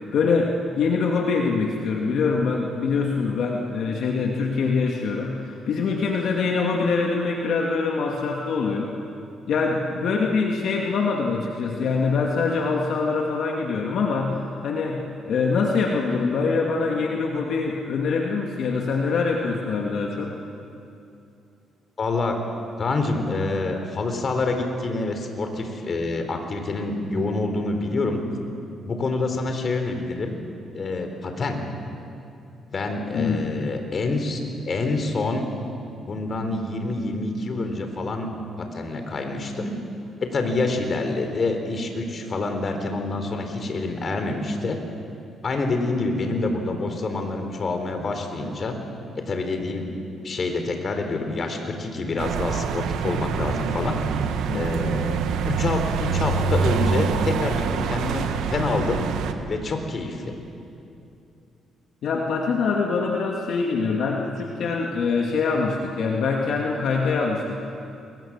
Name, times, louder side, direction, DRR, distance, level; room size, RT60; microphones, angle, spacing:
voice 1, 0.1-8.9 9.5-20.3 33.1-33.6 54.5-54.9 62.0-67.5, left 4 dB, 70° left, 0 dB, 2.4 m, -24 dB
voice 2, 22.0-22.4 22.8-28.2 28.9-30.4 30.7-31.6 32.7-34.4 34.7-35.5 36.0-38.3 38.6-39.8 40.2-44.8 45.4-48.8 49.3-49.9 50.2-54.0 54.5-58.2 58.5-59.1 59.5-60.3, left 3 dB, 45° left, 5 dB, 4.0 m, -27 dB
sound 1, 52.2-59.3, right 6 dB, 85° right, 1.6 m, -25 dB
29.0 x 22.0 x 7.5 m, 2.7 s
cardioid pair, 90°, 0 cm